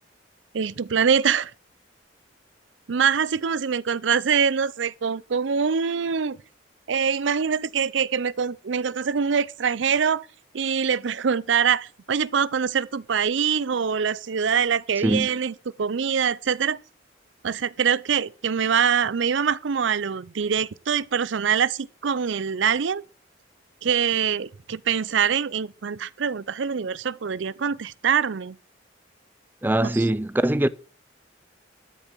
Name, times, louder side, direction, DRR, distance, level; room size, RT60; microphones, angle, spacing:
voice 1, 0.5-1.5 2.9-6.4 6.9-10.3 10.5-16.8 17.4-23.0 23.8-28.6 29.9-30.0, right 7 dB, 70° right, 0.5 m, -24 dB
voice 2, 29.6-30.7, right 1 dB, 10° right, 0.4 m, -22 dB
13.0 x 6.7 x 6.1 m
head